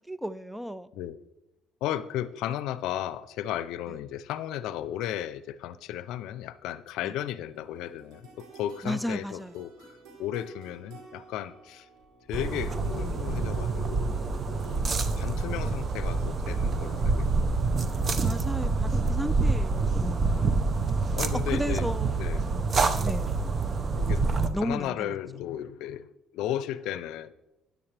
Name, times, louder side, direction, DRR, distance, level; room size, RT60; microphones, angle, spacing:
voice 1, 0.1-0.9 7.0-7.1 8.8-9.5 18.2-20.6 21.5-23.5 24.5-25.1, equal, 5° right, 17 dB, 0.3 m, -34 dB
voice 2, 1.8-11.9 12.3-14.1 14.5-17.6 20.2-21.9 22.2-22.5 24.0-24.3 24.6-26.1 26.3-27.3, left 11 dB, 80° left, 15 dB, 0.5 m, -35 dB
sound 1, 7.2-20.4, right 3 dB, 85° right, 3.9 m, -54 dB
sound 2, 12.3-14.7, equal, 25° left, 4.0 m, -44 dB
sound 3, 12.3-24.5, right 3 dB, 35° right, 0.8 m, -27 dB
13.0 x 9.6 x 3.4 m, 0.96 s
cardioid pair, 110°, 0 cm